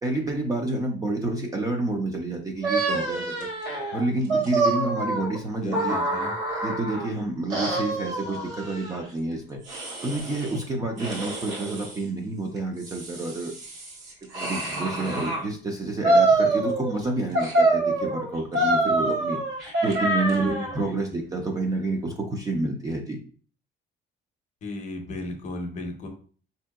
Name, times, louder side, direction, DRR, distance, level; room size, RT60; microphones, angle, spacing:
voice 1, 0.0-3.5 3.9-5.9 6.6-9.6 10.0-13.5 14.3-19.4 19.8-23.2, right 2 dB, 20° right, 2 dB, 0.4 m, -29 dB
sound 1, 2.6-7.1 7.5-9.0 9.7-10.6 11.0-12.0 12.6-15.4 16.0-17.0 17.3-20.8, right 2 dB, 75° right, 1.4 m, -26 dB
voice 2, 5.6-6.3 20.4-20.7 24.6-26.1, left 2 dB, 40° left, 4 dB, 0.6 m, -34 dB
4.3 x 2.7 x 2.2 m, 0.42 s
cardioid pair, 175°, 20 cm